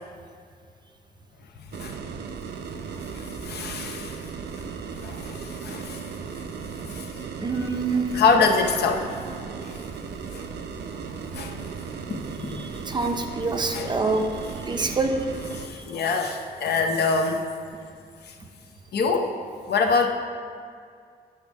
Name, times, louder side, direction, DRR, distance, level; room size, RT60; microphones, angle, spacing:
sound 1, 1.7-15.7, right 5 dB, 80° right, 0.5 m, -36 dB
voice 1, 3.1-4.2 5.0-6.0 6.9-7.1 7.5-7.7 8.1-9.1 9.7-9.8 10.3-10.5 10.9-11.0 11.3-12.7 13.0-13.1 13.7-13.9 14.7-15.0 15.6-17.5 18.3-18.4 18.9-19.3 19.7-20.1, left 4 dB, 75° left, 3 dB, 0.7 m, -25 dB
voice 2, 7.4-8.1 12.9-14.3 14.7-15.1, right 3 dB, 25° right, 4 dB, 0.5 m, -25 dB
10.0 x 3.6 x 5.2 m, 2.2 s
wide cardioid pair, 160°, 17 cm